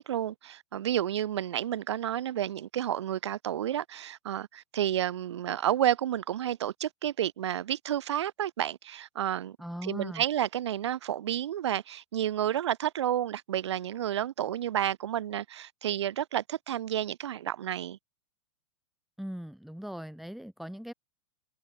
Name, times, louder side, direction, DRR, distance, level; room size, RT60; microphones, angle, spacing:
voice 1, 0.0-9.6 9.8-18.0, right 11 dB, 70° right, 0.5 m, -30 dB
voice 2, 9.6-10.2 19.2-20.9, equal, ahead, 3.1 m, -39 dB
figure-of-eight pair, 100°, 15 cm